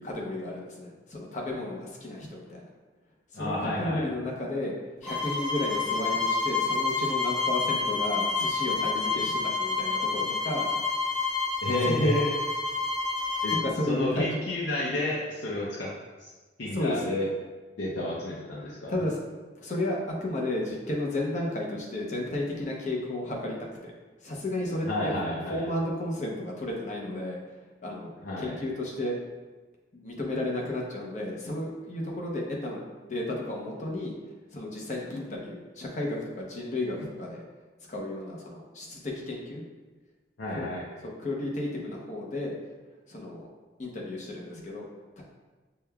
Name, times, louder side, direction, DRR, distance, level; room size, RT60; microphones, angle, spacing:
voice 1, 0.0-2.7 3.3-10.9 11.8-12.0 13.6-14.3 16.7-17.0 18.9-19.2 19.6-23.6 23.8-23.9 24.2-25.1 25.5-27.4 27.8-29.1 29.9-37.4 37.9-39.6 40.5-40.7 41.0-42.6 43.1-43.5 43.8-44.9 45.2-45.3, left 1 dB, 40° left, -2 dB, 0.7 m, -33 dB
voice 2, 3.3-4.1 11.6-12.3 13.4-13.5 13.9-15.9 16.2-16.3 16.6-17.3 17.8-18.9 24.9-25.6 28.2-28.6 40.4-40.9, left 1 dB, 85° left, -6 dB, 0.6 m, -30 dB
sound 1, 5.0-13.7, left 4 dB, 5° left, 0.7 m, -28 dB
6.3 x 2.2 x 2.2 m, 1.3 s
head